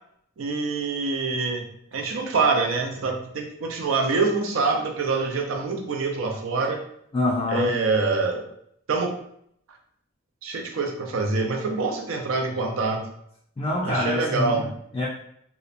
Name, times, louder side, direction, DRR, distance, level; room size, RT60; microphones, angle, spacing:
voice 1, 0.4-6.8 7.5-8.5 8.9-9.2 10.4-13.1 13.8-14.7, right 3 dB, 75° right, 3 dB, 0.5 m, -25 dB
voice 2, 7.1-7.8 13.6-15.1, left 2 dB, 25° left, -5 dB, 0.4 m, -26 dB
2.8 x 2.1 x 2.4 m, 0.71 s
head